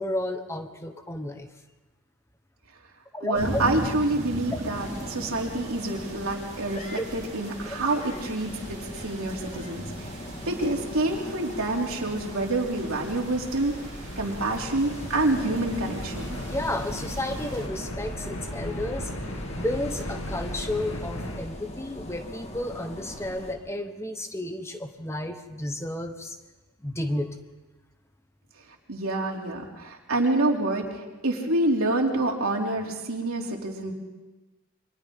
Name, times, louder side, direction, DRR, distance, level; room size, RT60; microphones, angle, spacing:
voice 1, 0.0-1.5 3.1-3.7 4.5-4.6 7.0-7.1 16.4-26.4 26.8-27.4, left 1 dB, 10° left, 7 dB, 1.2 m, -32 dB
voice 2, 3.2-10.1 10.4-13.7 14.2-16.4 28.9-33.9, right 2 dB, 75° right, 0 dB, 3.0 m, -27 dB
sound 1, 3.3-17.7, right 1 dB, 30° right, 3.2 m, -40 dB
sound 2, 4.7-23.5, equal, 30° left, 1.9 m, -40 dB
sound 3, 11.9-21.4, left 1 dB, 65° left, 2.2 m, -37 dB
29.5 x 24.0 x 3.8 m, 1.2 s
head